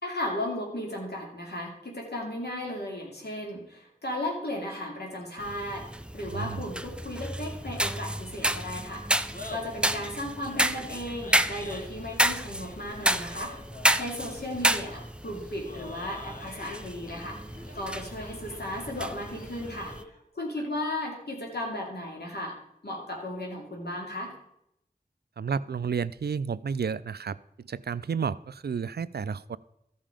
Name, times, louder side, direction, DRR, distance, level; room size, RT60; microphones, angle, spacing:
voice 1, 0.0-5.9 6.1-9.0 9.5-13.5 13.9-17.4 17.7-19.9 20.3-22.6 22.8-24.3, left 1 dB, 90° left, -1 dB, 2.6 m, -35 dB
sound 1, 5.4-20.0, right 1 dB, 5° right, 0.5 m, -31 dB
voice 2, 6.3-6.6 25.4-29.6, right 6 dB, 80° right, 17 dB, 0.4 m, -31 dB
Laughter, 9.2-20.2, left 2 dB, 60° left, 1.6 m, -47 dB
14.0 x 5.6 x 5.0 m, 0.77 s
wide cardioid pair, 50°, 16 cm